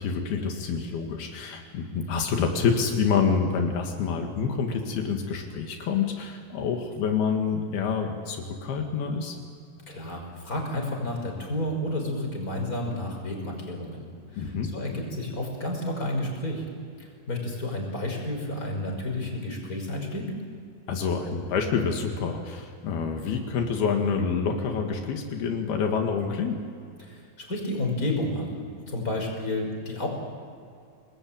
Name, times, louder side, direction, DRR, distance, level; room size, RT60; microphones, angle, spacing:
voice 1, 0.0-9.4 14.3-14.7 20.9-26.6, left 5 dB, 85° left, 3 dB, 3.9 m, -27 dB
voice 2, 9.9-14.1 14.3-16.7 17.0-20.3 27.0-28.6 28.9-30.1, left 1 dB, 20° left, 1 dB, 5.9 m, -31 dB
29.0 x 20.5 x 8.8 m, 2.4 s
omnidirectional pair, 4.3 m